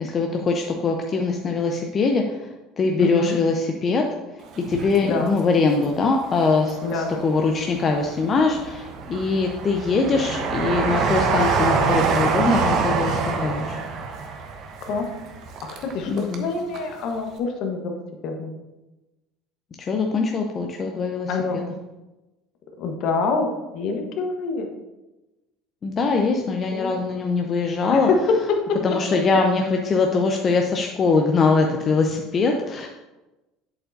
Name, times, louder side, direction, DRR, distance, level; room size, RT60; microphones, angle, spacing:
voice 1, 0.0-2.5 2.8-4.1 4.6-13.8 16.1-16.5 19.8-21.6 25.8-28.1 28.8-32.9, left 4 dB, 35° left, 2 dB, 0.7 m, -22 dB
voice 2, 3.0-3.4 5.0-5.4 6.8-7.2 14.8-15.3 15.6-18.5 21.3-21.6 22.8-24.7 26.7-27.5 27.9-28.4 28.7-28.8, left 4 dB, 55° left, 3 dB, 1.2 m, -26 dB
Train, 4.5-5.8 6.2-7.2 7.7-16.5 16.7-16.8, right 4 dB, 55° right, 1.0 m, -25 dB
8.0 x 7.4 x 2.7 m, 1.0 s
hypercardioid pair, 70°, 0 cm